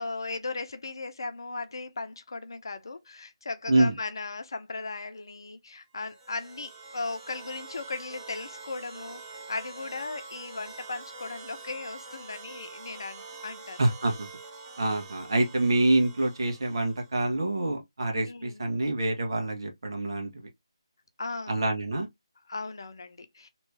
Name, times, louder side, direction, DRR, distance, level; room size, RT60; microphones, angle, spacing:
voice 1, 0.0-9.2 9.5-13.8 18.2-18.6 21.2-21.6 22.5-23.5, left 3 dB, 55° left, 0.7 m, -37 dB
sound 1, 6.0-17.2, right 3 dB, 15° right, 0.8 m, -46 dB
voice 2, 13.8-14.3 14.8-20.5 21.5-22.1, right 2 dB, 55° right, 1.5 m, -26 dB
3.2 x 3.0 x 3.1 m
figure-of-eight pair, 150°, 3 cm